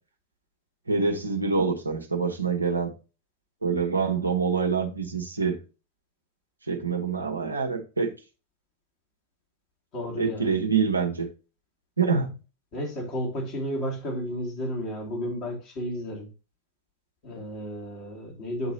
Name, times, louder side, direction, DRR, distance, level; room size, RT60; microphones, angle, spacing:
voice 1, 0.9-2.9 3.6-5.6 6.7-8.1 10.2-11.3 12.0-12.3, right 5 dB, 80° right, 1.1 m, -26 dB
voice 2, 9.9-10.5 12.7-16.3 17.2-18.7, equal, 40° left, 2.7 m, -32 dB
8.1 x 3.0 x 4.0 m
figure-of-eight pair, 90°, 0 cm